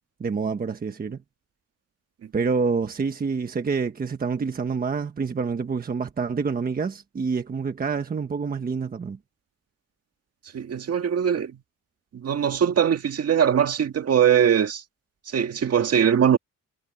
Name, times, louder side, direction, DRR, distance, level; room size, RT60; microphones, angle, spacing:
voice 1, 0.2-1.2 2.3-9.2, right 5 dB, 25° right, 1.3 m, -27 dB
voice 2, 10.5-11.6 12.1-14.8 15.3-16.4, right 8 dB, 45° right, 1.9 m, -21 dB
wide cardioid pair, 175°, 33 cm